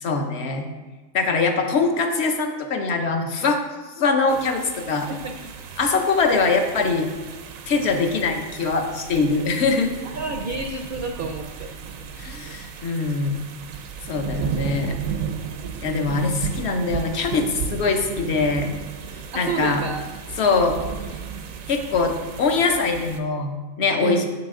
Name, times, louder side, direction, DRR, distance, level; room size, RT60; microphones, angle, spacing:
voice 1, 0.0-0.7 1.1-3.6 4.0-5.1 5.8-7.1 7.7-9.9 12.2-13.5 14.1-15.0 15.8-18.7 19.4-19.8 20.4-20.8 21.7-24.2, left 4 dB, 55° left, 5 dB, 1.0 m, -22 dB
sound 1, 4.3-23.2, right 6 dB, 85° right, 1.1 m, -34 dB
voice 2, 5.1-5.4 10.0-11.7 19.3-20.0 24.0-24.2, right 4 dB, 55° right, 4 dB, 0.6 m, -30 dB
8.8 x 6.0 x 3.7 m, 1.3 s
omnidirectional pair, 1.4 m